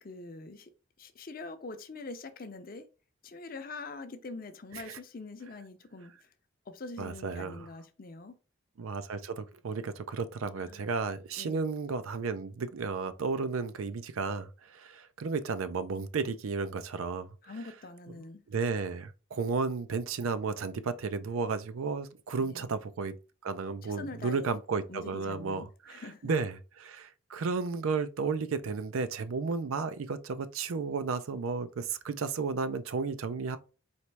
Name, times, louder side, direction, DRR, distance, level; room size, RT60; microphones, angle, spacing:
voice 1, 0.0-0.7 1.0-2.8 3.2-6.3 6.7-8.3 10.6-10.8 11.4-11.6 17.4-18.4 22.4-22.7 23.8-24.6 24.9-26.3, left 3 dB, 45° left, 0.5 m, -44 dB
voice 2, 7.0-7.7 8.8-17.3 18.5-23.1 23.4-33.6, right 4 dB, 90° right, 0.5 m, -33 dB
4.3 x 3.0 x 3.3 m
head